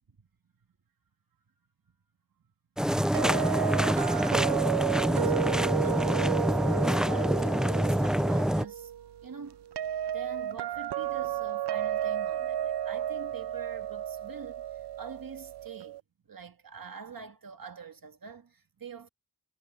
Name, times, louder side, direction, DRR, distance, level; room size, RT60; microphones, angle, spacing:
sound 1, 2.8-8.6, equal, ahead, 0.5 m, -26 dB
voice 1, 2.8-8.9 9.2-9.6 10.1-14.7 15.0-16.0 16.3-19.1, right 6 dB, 60° right, 1.9 m, -45 dB
sound 2, 3.1-16.0, right 10 dB, 80° right, 0.5 m, -33 dB
wide cardioid pair, 95°, 40 cm